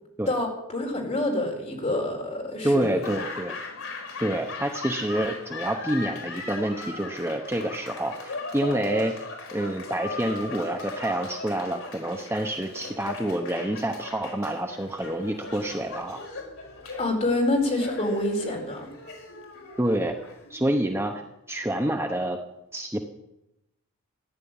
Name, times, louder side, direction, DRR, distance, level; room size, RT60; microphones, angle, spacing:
voice 1, 0.3-2.9 17.0-18.9, left 1 dB, 30° left, 1 dB, 4.3 m, -27 dB
voice 2, 2.6-3.5 4.2-9.1 9.5-16.2 19.8-20.1 20.5-21.2 21.5-22.4 22.7-23.0, right 1 dB, 10° right, 4 dB, 0.9 m, -27 dB
Laughter / Applause, 2.8-20.9, left 3 dB, 75° left, 4.4 m, -38 dB
15.0 x 10.5 x 8.8 m, 0.88 s
head